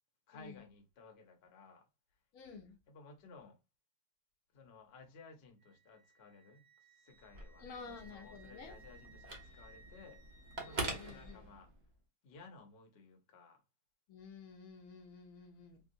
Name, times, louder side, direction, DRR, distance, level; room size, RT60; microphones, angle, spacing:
voice 1, 0.3-1.9 2.9-3.6 4.5-10.2 10.6-11.7 12.2-13.6, left 4 dB, 55° left, 0.8 m, -57 dB
voice 2, 2.3-2.8 7.6-8.7 10.7-11.4 14.1-15.8, left 5 dB, 85° left, 1.1 m, -51 dB
Wind instrument woodwind instrument, 5.6-11.4, right 3 dB, 75° right, 2.1 m, -62 dB
Telephone, 7.2-12.0, right 2 dB, 40° right, 0.7 m, -45 dB
4.5 x 2.0 x 2.5 m
omnidirectional pair, 1.5 m